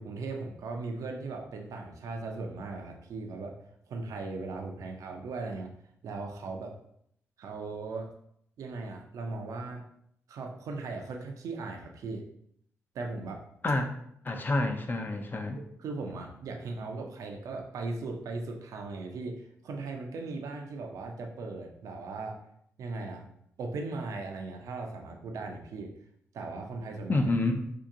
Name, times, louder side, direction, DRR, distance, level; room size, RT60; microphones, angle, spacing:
voice 1, 0.0-3.6 3.9-5.7 6.0-6.7 7.4-8.1 8.6-9.8 10.3-12.2 12.9-13.4 15.6-19.3 19.6-22.4 22.8-23.3 23.6-25.9 26.3-27.2, right 3 dB, 75° right, 2 dB, 0.5 m, -38 dB
voice 2, 14.2-15.6 27.1-27.6, left 2 dB, 35° left, 5 dB, 0.5 m, -28 dB
2.8 x 2.5 x 3.6 m, 0.71 s
cardioid pair, 60°, 6 cm